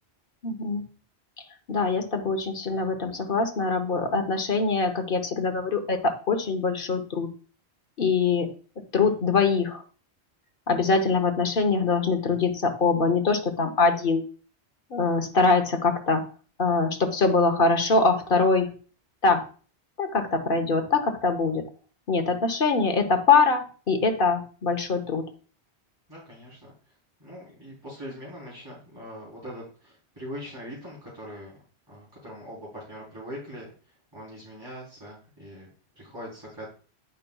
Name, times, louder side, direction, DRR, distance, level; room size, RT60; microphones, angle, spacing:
voice 1, 0.4-0.8 1.7-7.3 8.0-8.5 8.9-9.8 10.7-14.2 14.9-16.2 16.6-18.7 19.2-19.4 20.0-21.6 22.1-25.3, left 4 dB, 55° left, 5 dB, 1.2 m, -23 dB
voice 2, 26.1-26.7 27.2-31.6 31.9-33.7 34.1-35.7 36.0-36.7, equal, 20° right, -8 dB, 3.4 m, -41 dB
9.3 x 5.5 x 2.3 m, 0.40 s
omnidirectional pair, 1.1 m